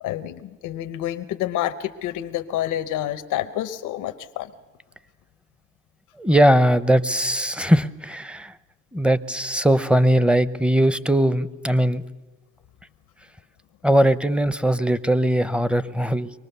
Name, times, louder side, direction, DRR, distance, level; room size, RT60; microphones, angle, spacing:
voice 1, 0.0-4.5, left 12 dB, 90° left, 9 dB, 0.8 m, -28 dB
voice 2, 6.2-8.5 8.9-12.0 13.8-16.3, right 1 dB, 5° right, 16 dB, 0.7 m, -20 dB
24.0 x 19.0 x 6.8 m, 1.3 s
cardioid pair, 90°, 30 cm